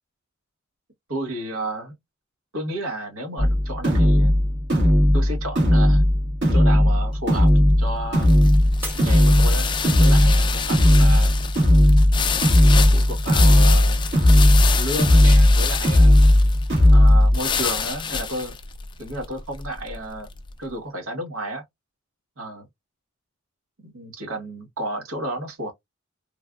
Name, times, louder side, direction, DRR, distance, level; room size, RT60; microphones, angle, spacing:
voice 1, 1.1-1.9 2.5-4.4 5.1-6.0 6.5-8.3 8.9-11.4 12.7-14.0 14.7-16.2 16.9-18.6 19.0-20.3 20.6-21.6 22.4-22.7 23.8-25.7, right 1 dB, 75° right, 1.0 m, -32 dB
sound 1, 3.4-17.4, left 1 dB, 55° right, 1.6 m, -16 dB
sound 2, 7.2-20.5, left 6 dB, 20° left, 0.3 m, -29 dB
Shatter, 8.8-10.1 10.6-11.1 11.6-11.7, right 1 dB, 10° right, 0.9 m, -38 dB
3.2 x 2.3 x 2.2 m
head